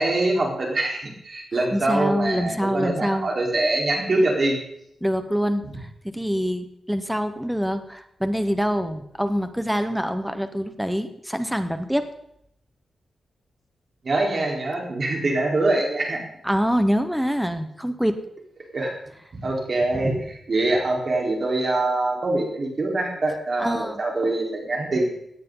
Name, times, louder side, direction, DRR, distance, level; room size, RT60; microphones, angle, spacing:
voice 1, 0.0-4.6 14.0-16.2 18.7-18.9 19.3-25.1, right 2 dB, 45° right, -1 dB, 4.2 m, -24 dB
voice 2, 1.5-3.3 5.0-12.1 16.4-18.3 23.6-24.0, equal, 5° right, 8 dB, 1.1 m, -25 dB
17.0 x 10.5 x 4.0 m, 0.77 s
cardioid pair, 85°, 0 cm